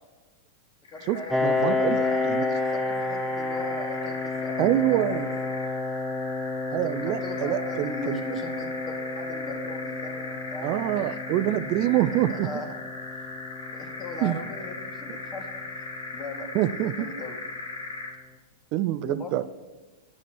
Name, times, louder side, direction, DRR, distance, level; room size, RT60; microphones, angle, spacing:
sound 1, 0.8-18.3, left 3 dB, 85° left, 1.5 m, -38 dB
voice 1, 0.9-5.2 6.8-11.1 12.3-12.7 13.7-15.5 15.8-17.4 19.0-19.4, left 2 dB, 30° left, 4 dB, 2.1 m, -39 dB
Piano, 1.3-16.7, left 3 dB, 10° left, 0.9 m, -31 dB
voice 2, 1.4-2.0 2.3-2.4 4.6-5.3 6.7-8.2 10.6-12.5 14.2-14.4 16.5-16.9 18.7-19.4, right 14 dB, 50° right, 14 dB, 0.4 m, -25 dB
9.1 x 7.1 x 6.3 m, 1.3 s
hypercardioid pair, 105°, 0 cm